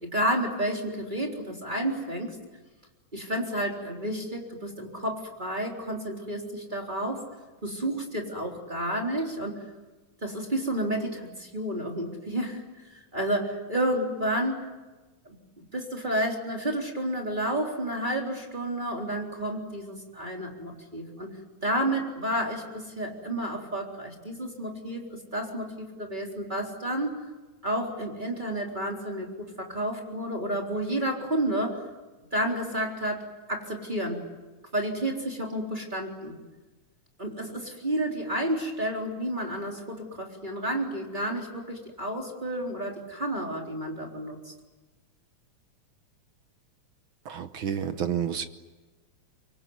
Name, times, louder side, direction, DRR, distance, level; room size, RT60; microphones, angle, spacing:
voice 1, 0.0-2.4 3.1-7.3 7.6-9.6 10.2-12.6 12.9-14.7 15.3-21.3 21.6-27.2 27.6-31.8 32.3-34.2 34.7-36.4 37.2-44.5, right 1 dB, 15° right, 0 dB, 3.8 m, -31 dB
voice 2, 47.2-48.4, right 8 dB, 65° right, 9 dB, 1.4 m, -30 dB
26.0 x 23.5 x 9.5 m, 1.2 s
omnidirectional pair, 3.4 m